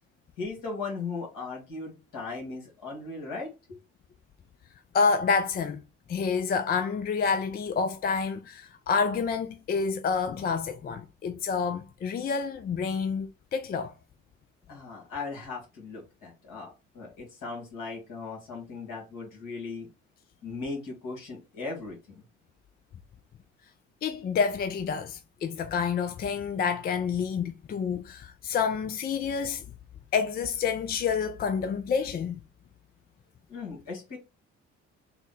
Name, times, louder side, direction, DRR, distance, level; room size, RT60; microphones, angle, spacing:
voice 1, 0.4-3.5 14.7-16.7 16.9-19.9 20.4-22.2 33.5-34.2, left 4 dB, 60° left, 1.8 m, -37 dB
voice 2, 4.9-5.8 6.1-13.9 24.0-29.6 30.1-32.4, left 5 dB, 25° left, 0.4 m, -28 dB
3.8 x 2.1 x 3.8 m
hypercardioid pair, 50°, 36 cm